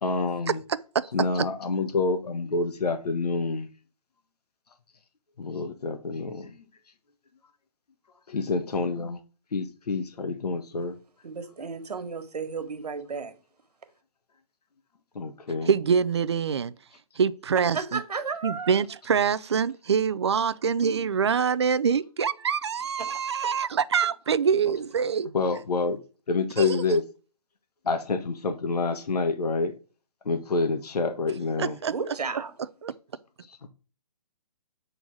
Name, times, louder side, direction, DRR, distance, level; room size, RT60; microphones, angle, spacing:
voice 1, 0.0-0.6 1.1-3.7 5.4-6.5 8.3-9.2 9.5-10.9 15.1-15.7 25.3-26.0 26.3-27.0 27.8-29.7 30.2-31.8, left 3 dB, 85° left, 1.3 m, -27 dB
voice 2, 0.9-1.5 15.7-16.7 17.2-18.0 18.4-25.3 26.6-26.8 31.6-31.9 32.8-32.9, right 6 dB, 45° right, 0.5 m, -25 dB
voice 3, 11.2-13.3 17.7-18.7 23.1-23.5 31.9-32.5, right 5 dB, 90° right, 1.6 m, -33 dB
8.8 x 4.0 x 6.1 m
hypercardioid pair, 175°, 20 cm